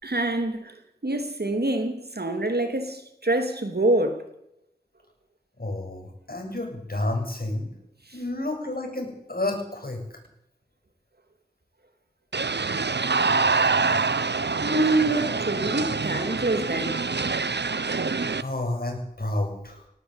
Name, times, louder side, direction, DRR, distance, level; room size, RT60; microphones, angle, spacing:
voice 1, 0.0-4.2 8.1-8.2 14.6-17.0, right 2 dB, 70° right, 3.2 m, -26 dB
voice 2, 5.6-7.7 8.1-10.0 18.4-19.8, left 1 dB, 60° left, 7.9 m, -30 dB
sound 1, 12.3-18.4, right 4 dB, 85° right, 0.9 m, -25 dB
18.5 x 17.5 x 8.3 m
wide cardioid pair, 40°, 17 cm